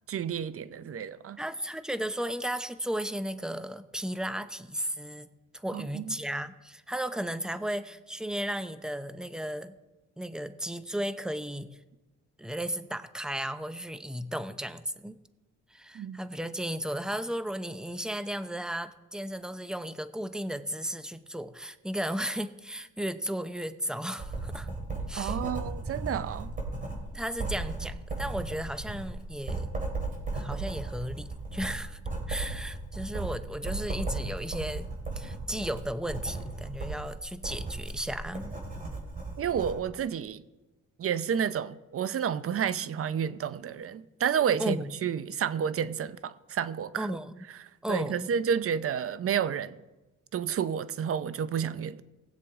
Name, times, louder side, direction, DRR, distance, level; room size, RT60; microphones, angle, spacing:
voice 1, 0.1-1.4 5.7-6.1 15.9-16.2 25.2-26.5 39.4-40.4 41.0-47.2 47.9-49.8 50.3-52.0, right 8 dB, 50° right, 0.7 m, -30 dB
voice 2, 1.4-9.7 10.2-11.8 12.4-15.2 15.7-24.7 25.1-25.4 27.1-29.7 30.3-32.0 32.3-34.9 35.2-38.9 44.6-44.9 47.0-47.3 47.8-48.3, equal, ahead, 0.7 m, -35 dB
Writing, 24.2-39.8, right 3 dB, 25° right, 3.5 m, -36 dB
19.5 x 7.6 x 3.7 m
cardioid pair, 90°, 30 cm